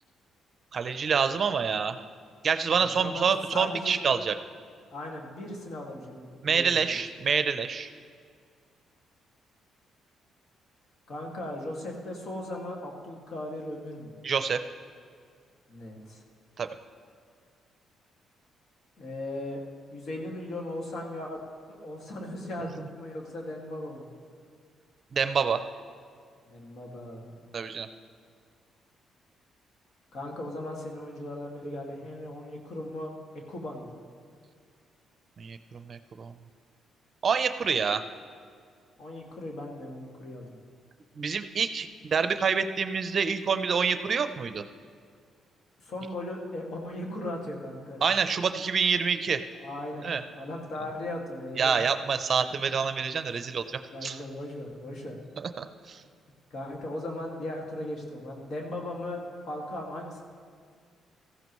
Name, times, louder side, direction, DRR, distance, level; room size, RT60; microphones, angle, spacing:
voice 1, 0.7-2.0 2.4-4.3 6.4-7.9 14.2-14.6 16.6-16.7 25.1-25.6 27.5-27.9 35.4-36.3 37.2-38.0 41.2-44.6 48.0-49.4 50.0-50.2 51.6-54.2 55.6-56.0, right 6 dB, 45° right, 10 dB, 0.6 m, -27 dB
voice 2, 2.7-4.0 4.9-7.0 11.1-14.1 15.7-16.2 19.0-19.6 19.9-21.4 21.7-24.1 26.4-27.5 30.1-33.1 33.5-33.9 39.0-40.6 45.8-48.0 49.6-51.8 52.5-52.6 53.3-53.4 53.9-55.2 56.5-60.2, left 1 dB, 60° left, 0 dB, 2.2 m, -38 dB
16.0 x 14.5 x 3.1 m, 2.2 s
cardioid pair, 90°, 0 cm